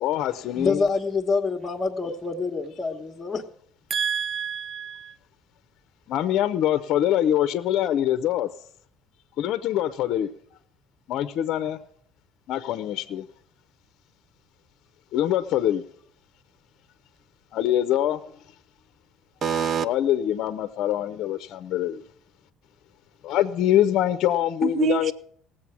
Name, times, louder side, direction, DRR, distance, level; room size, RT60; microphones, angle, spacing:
voice 1, 0.0-0.8 2.0-2.1 6.1-8.5 9.4-10.3 11.1-11.8 12.5-13.3 15.1-15.8 17.5-18.2 19.8-22.0 23.2-25.1, left 11 dB, 60° left, 0.6 m, -24 dB
voice 2, 0.5-3.4, left 4 dB, 20° left, 1.1 m, -26 dB
voice 3, 3.9-5.1 19.4-19.9 24.6-25.1, right 8 dB, 45° right, 0.7 m, -26 dB
18.0 x 7.7 x 6.0 m
cardioid pair, 110°, 0 cm